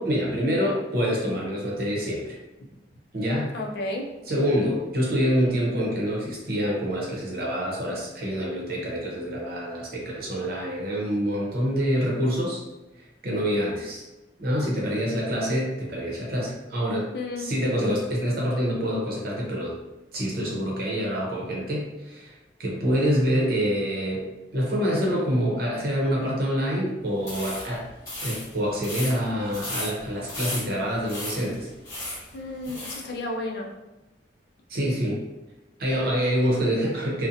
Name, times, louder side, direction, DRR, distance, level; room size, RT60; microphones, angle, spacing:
voice 1, 0.0-2.4 3.1-3.5 4.3-12.6 13.0-14.1 14.4-17.1 17.4-19.7 20.1-24.3 24.5-27.9 28.2-31.7 34.7-35.2 35.8-37.3, equal, 60° right, -3 dB, 0.8 m, -26 dB
voice 2, 3.5-4.1 17.1-17.5 32.3-33.7, left 2 dB, 65° left, 0 dB, 0.5 m, -32 dB
sound 1, 27.2-33.1, left 1 dB, 20° left, 1.0 m, -36 dB
2.6 x 2.1 x 2.6 m, 1.1 s
head